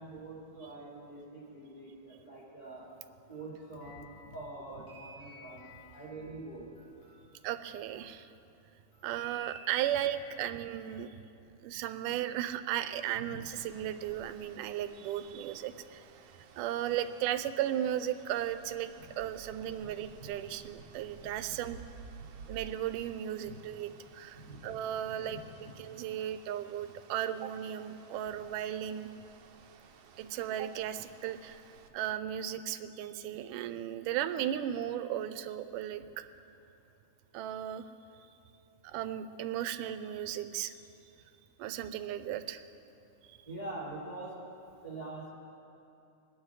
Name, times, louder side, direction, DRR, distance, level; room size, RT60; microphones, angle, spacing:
voice 1, 0.0-2.8 3.3-5.7 5.9-6.6 13.3-13.4 19.8-19.9 20.5-20.9 21.2-21.3 23.4-23.6 24.4-24.7 25.3-25.7 43.5-44.4 44.8-45.3, right 2 dB, 25° left, -7 dB, 4.6 m, -45 dB
sound 1, 2.8-8.4 8.9-10.5, left 2 dB, 80° left, 4.4 m, -56 dB
voice 2, 7.4-8.3 9.0-11.1 11.6-16.0 16.6-18.9 19.2-21.8 22.5-29.1 30.2-31.6 31.9-36.0 37.3-37.9 38.8-40.8 41.6-42.6 43.3-43.4, right 11 dB, 90° right, 11 dB, 2.2 m, -35 dB
sound 2, 13.6-31.9, right 6 dB, 70° right, 1.4 m, -55 dB
24.5 x 10.5 x 4.8 m, 2.8 s
omnidirectional pair, 3.6 m